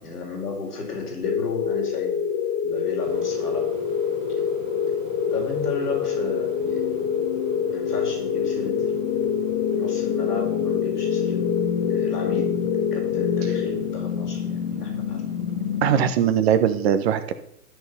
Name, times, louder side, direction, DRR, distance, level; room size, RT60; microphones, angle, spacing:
voice 1, 0.0-2.2 2.6-3.7 5.3-7.1 7.7-9.3 9.7-11.4 11.9-12.5 12.9-15.2, left 4 dB, 70° left, 1 dB, 5.0 m, -34 dB
sound 1, 1.2-14.4, left 7 dB, 15° left, 0.8 m, -26 dB
sound 2, 3.0-16.0, right 9 dB, 20° right, 1.1 m, -43 dB
sound 3, 5.9-16.1, left 10 dB, 40° left, 0.9 m, -30 dB
voice 2, 15.8-17.3, right 9 dB, 40° right, 11 dB, 1.3 m, -20 dB
13.0 x 6.7 x 7.0 m, 0.75 s
figure-of-eight pair, 120°, 48 cm